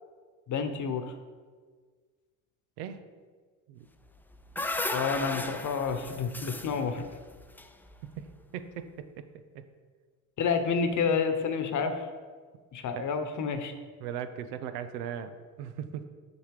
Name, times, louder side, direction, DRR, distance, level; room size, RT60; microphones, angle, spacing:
voice 1, 0.5-1.1 4.9-7.1 10.4-12.1 12.7-13.7, left 5 dB, 40° left, 7 dB, 1.1 m, -29 dB
sound 1, 4.1-8.3, left 2 dB, 5° left, 0.4 m, -36 dB
voice 2, 8.5-9.2 12.9-13.1 14.0-16.1, right 9 dB, 80° right, 10 dB, 0.8 m, -38 dB
6.9 x 6.0 x 4.9 m, 1.5 s
supercardioid pair, 90°, 45 cm